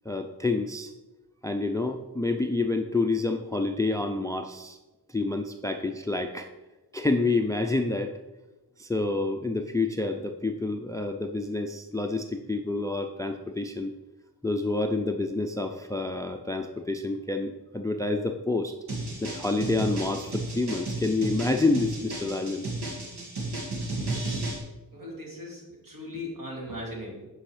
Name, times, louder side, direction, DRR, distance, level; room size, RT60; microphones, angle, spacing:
voice 1, 0.1-0.9 1.4-4.8 5.1-6.5 6.9-8.2 8.8-13.9 14.4-18.7 19.2-22.6, left 2 dB, 10° left, 6 dB, 0.5 m, -28 dB
sound 1, 18.9-24.6, right 2 dB, 70° right, 2.3 m, -33 dB
voice 2, 24.9-27.3, left 1 dB, 55° right, -1 dB, 2.8 m, -38 dB
8.8 x 5.5 x 5.0 m, 1.1 s
wide cardioid pair, 115°, 40 cm